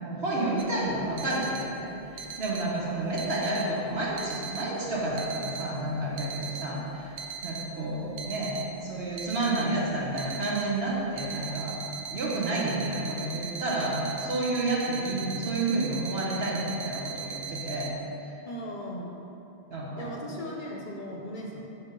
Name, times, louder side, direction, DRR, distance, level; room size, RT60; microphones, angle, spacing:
voice 1, 0.0-7.1 7.4-11.8 12.1-17.9 18.2-18.3 19.7-20.4, right 2 dB, 70° right, -5 dB, 1.4 m, -30 dB
sound 1, 0.6-17.9, right 6 dB, 85° right, 0.9 m, -39 dB
voice 2, 18.4-19.1 20.0-21.7, equal, 50° left, -2 dB, 0.9 m, -37 dB
5.6 x 4.3 x 5.3 m, 2.9 s
omnidirectional pair, 1.1 m